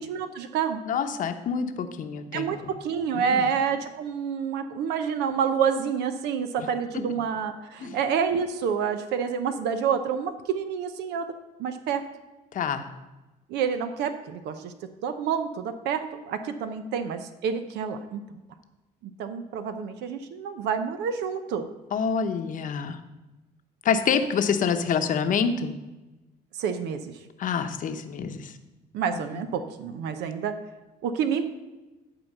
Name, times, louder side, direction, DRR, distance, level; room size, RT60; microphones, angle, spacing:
voice 1, 0.0-0.8 2.3-11.3 11.6-12.0 13.5-14.7 15.0-18.2 19.0-21.7 26.6-27.2 28.9-30.6 31.0-31.5, right 7 dB, 80° right, 9 dB, 0.8 m, -28 dB
voice 2, 0.9-2.5 3.1-3.5 6.6-6.7 6.9-7.0 7.8-8.0 12.5-12.9 21.9-23.0 23.8-25.8 27.4-28.6 29.1-29.5, left 6 dB, 50° left, 7 dB, 0.9 m, -27 dB
11.5 x 4.5 x 6.6 m, 1.1 s
cardioid pair, 110°, 17 cm